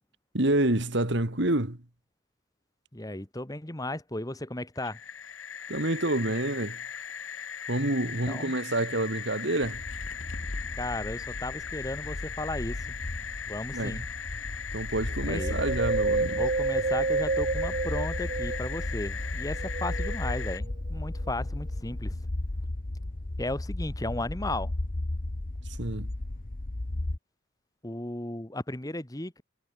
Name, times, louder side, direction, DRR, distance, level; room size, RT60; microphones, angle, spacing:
voice 1, 0.3-1.8 5.7-6.8 7.7-9.8 13.7-14.0 14.7-16.4 25.8-26.1, right 1 dB, 60° right, 2.4 m, -28 dB
voice 2, 2.9-5.0 8.0-8.5 10.8-13.0 13.5-14.0 15.2-15.6 16.3-22.2 23.4-24.7 27.8-29.4, left 1 dB, 20° left, 1.7 m, -35 dB
sound 1, 4.8-20.6, left 7 dB, 75° left, 1.6 m, -39 dB
sound 2, 9.6-27.2, left 1 dB, 45° left, 1.0 m, -35 dB
Wind, 15.4-18.9 19.5-20.7 21.3-21.4, right 3 dB, 40° right, 0.7 m, -29 dB
head